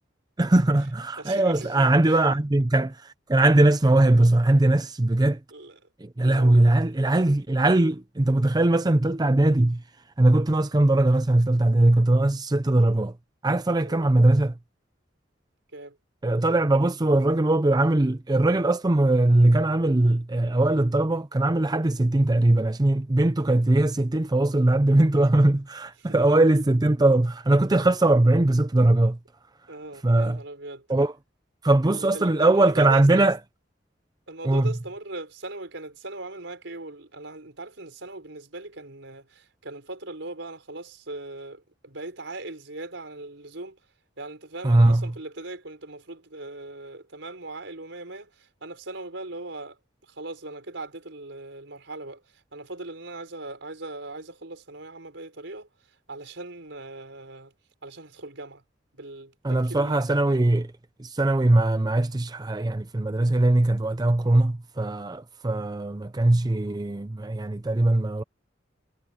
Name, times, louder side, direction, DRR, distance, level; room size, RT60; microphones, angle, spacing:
voice 1, 0.4-5.4 6.0-9.8 10.2-13.1 13.4-14.5 16.2-29.2 30.0-30.4 30.9-31.1 31.6-33.4 34.4-34.7 44.6-45.1 59.4-60.7 61.0-68.2, right 2 dB, 20° right, 0.6 m, -21 dB
voice 2, 1.2-2.3 2.8-2.9 5.5-5.8 6.2-6.6 13.8-14.1 15.7-16.0 26.0-26.4 29.7-30.9 31.9-33.3 34.3-43.8 44.2-55.7 56.1-57.5 57.8-58.6 58.9-60.4 65.5-65.7, right 2 dB, 75° right, 5.2 m, -39 dB
head